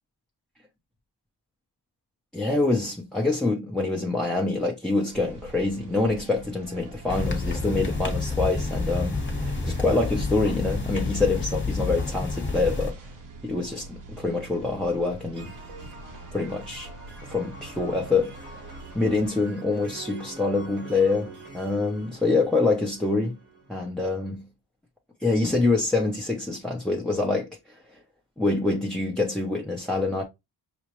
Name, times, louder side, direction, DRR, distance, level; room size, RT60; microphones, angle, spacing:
voice 1, 2.3-13.1 13.4-15.5 16.3-16.9 17.2-23.4 23.7-24.5 25.2-28.0 28.4-30.2, left 3 dB, ahead, 0.7 m, -26 dB
sound 1, 5.1-19.4, right 2 dB, 50° right, 0.9 m, -45 dB
sound 2, 7.1-12.9, left 3 dB, 30° left, 1.1 m, -29 dB
sound 3, 15.3-23.9, right 2 dB, 75° right, 1.5 m, -45 dB
6.0 x 2.1 x 3.0 m
wide cardioid pair, 100°, 40 cm